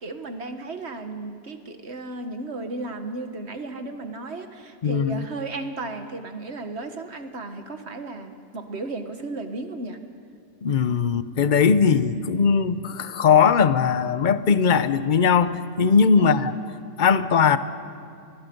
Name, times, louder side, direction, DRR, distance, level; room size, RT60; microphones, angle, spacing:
voice 1, 0.0-10.0 16.2-16.5, right 2 dB, 40° right, 7 dB, 1.6 m, -34 dB
voice 2, 4.8-5.3 10.6-16.5 17.0-17.6, left 6 dB, 50° left, 13 dB, 0.5 m, -19 dB
28.5 x 21.0 x 5.3 m, 2.5 s
omnidirectional pair, 1.8 m